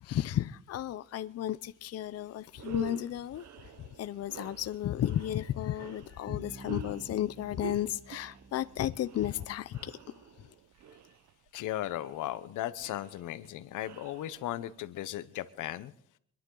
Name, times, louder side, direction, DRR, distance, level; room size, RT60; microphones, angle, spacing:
voice 1, 0.0-3.5 3.8-10.0, left 12 dB, 55° left, 0.6 m, -33 dB
sound 1, 2.0-2.1 2.5-14.8, right 7 dB, 65° right, 0.9 m, -48 dB
Bass guitar, 6.3-10.0, right 3 dB, 45° right, 3.9 m, -51 dB
voice 2, 11.5-15.9, left 13 dB, 85° left, 0.9 m, -36 dB
25.5 x 11.0 x 3.9 m
cardioid pair, 90°, 30 cm